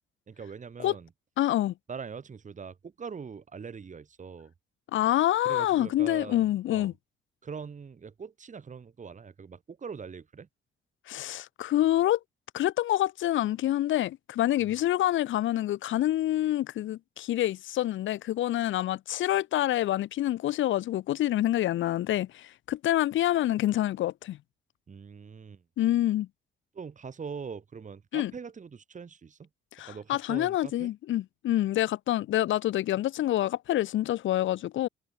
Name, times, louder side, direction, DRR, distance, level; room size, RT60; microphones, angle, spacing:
voice 1, 0.3-1.1 1.9-4.5 5.5-6.9 7.4-10.5 14.6-14.8 24.9-25.6 26.7-29.5 29.8-30.9, right 6 dB, 40° right, 3.6 m, -42 dB
voice 2, 1.4-1.7 4.9-6.9 11.1-12.2 12.5-24.4 25.8-26.3 28.1-28.3 29.8-34.9, left 13 dB, 75° left, 1.1 m, -27 dB
cardioid pair, 90°, 20 cm